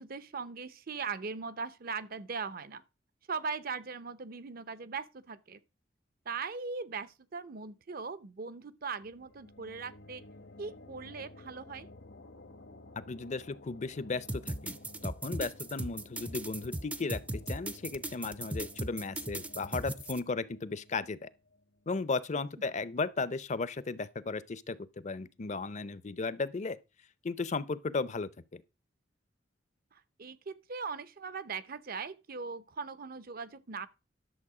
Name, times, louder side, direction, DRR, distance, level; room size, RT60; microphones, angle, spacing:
voice 1, 0.0-2.8 3.3-5.6 6.3-10.2 10.6-11.9 22.6-22.7 29.9-33.9, right 5 dB, 50° right, 0.7 m, -40 dB
sound 1, 9.0-22.4, left 2 dB, 65° left, 1.0 m, -54 dB
voice 2, 13.0-21.3 21.9-24.8 25.0-26.8 27.2-28.6, left 4 dB, 40° left, 0.6 m, -35 dB
sound 2, 14.3-20.2, right 1 dB, 10° right, 0.5 m, -37 dB
11.0 x 6.9 x 4.9 m
head